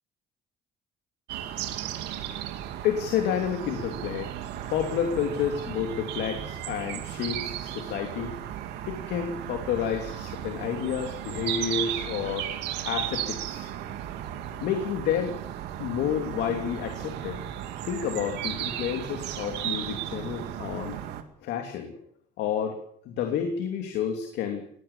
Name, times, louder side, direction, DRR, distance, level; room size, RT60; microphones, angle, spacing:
sound 1, 1.3-21.2, right 11 dB, 90° right, 2.3 m, -35 dB
voice 1, 2.8-4.4 4.7-8.4 8.9-12.5 12.8-13.7 14.6-15.4 15.8-17.4 17.8-21.0 21.4-22.0 22.4-22.8 23.0-24.6, left 8 dB, 85° left, 4 dB, 2.9 m, -30 dB
21.5 x 16.5 x 7.2 m, 0.63 s
cardioid pair, 110°, 17 cm